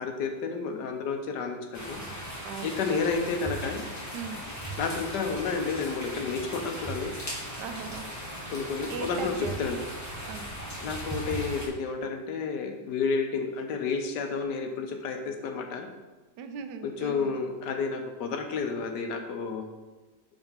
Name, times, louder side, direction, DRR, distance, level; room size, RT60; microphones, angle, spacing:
voice 1, 0.0-2.0 2.6-3.8 4.8-7.1 8.5-9.3 9.6-9.8 10.8-15.9 16.8-19.7, left 5 dB, 85° left, 4 dB, 1.4 m, -31 dB
sound 1, 1.7-11.7, right 1 dB, 15° left, 0.7 m, -38 dB
voice 2, 2.4-2.8 4.1-4.4 7.6-8.1 8.9-9.7 10.3-10.5 16.4-17.4, right 6 dB, 90° right, 8 dB, 1.2 m, -39 dB
6.7 x 3.6 x 5.6 m, 1.2 s
omnidirectional pair, 1.8 m